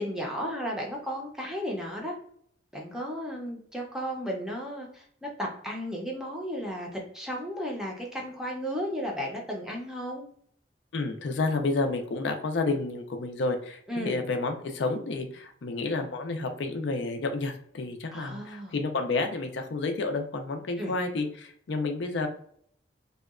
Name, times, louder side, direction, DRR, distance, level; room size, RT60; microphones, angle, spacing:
voice 1, 0.0-2.2 2.7-10.2 13.9-14.2 18.1-18.8 20.8-21.0, equal, 5° right, -1 dB, 0.5 m, -34 dB
voice 2, 10.9-22.3, left 3 dB, 70° left, 5 dB, 0.4 m, -30 dB
2.8 x 2.2 x 2.3 m, 0.63 s
head